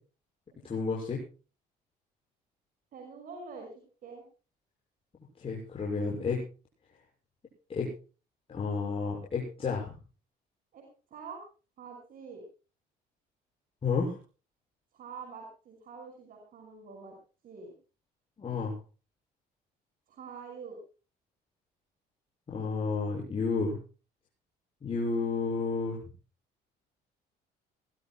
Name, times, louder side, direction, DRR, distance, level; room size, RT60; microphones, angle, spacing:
voice 1, 0.6-1.2 5.4-6.4 7.7-7.9 8.5-9.9 13.8-14.2 18.4-18.8 22.5-23.8 24.8-26.0, left 4 dB, 35° left, -3 dB, 6.9 m, -31 dB
voice 2, 2.9-4.2 10.7-10.9 11.1-11.4 11.8-12.4 14.9-17.1 17.4-17.7 20.1-20.8, right 5 dB, 55° right, 2 dB, 6.0 m, -45 dB
22.0 x 20.0 x 2.3 m, 0.36 s
cardioid pair, 110°, 17 cm